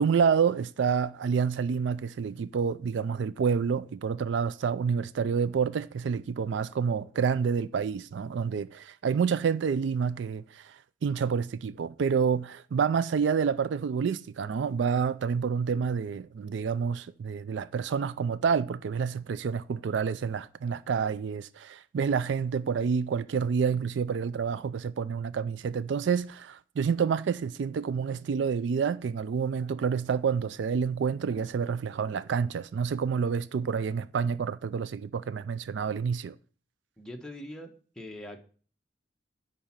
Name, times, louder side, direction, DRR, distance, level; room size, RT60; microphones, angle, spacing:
voice 1, 0.0-36.3, right 6 dB, 65° right, 0.3 m, -28 dB
voice 2, 37.0-38.4, left 1 dB, 5° left, 1.1 m, -42 dB
10.5 x 4.2 x 7.3 m
head